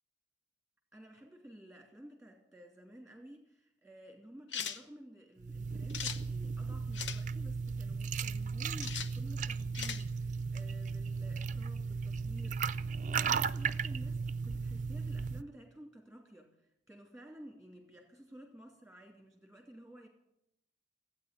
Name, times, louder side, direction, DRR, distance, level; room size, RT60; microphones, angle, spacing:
voice 1, 0.9-20.1, right 1 dB, ahead, 2 dB, 2.8 m, -53 dB
sound 1, 4.5-4.8 5.9-6.2 6.9-7.2 8.8-9.1 9.7-10.0, left 7 dB, 75° left, 1.0 m, -38 dB
sound 2, 5.4-15.4, right 5 dB, 40° right, 0.5 m, -36 dB
16.0 x 9.1 x 9.0 m, 0.80 s
head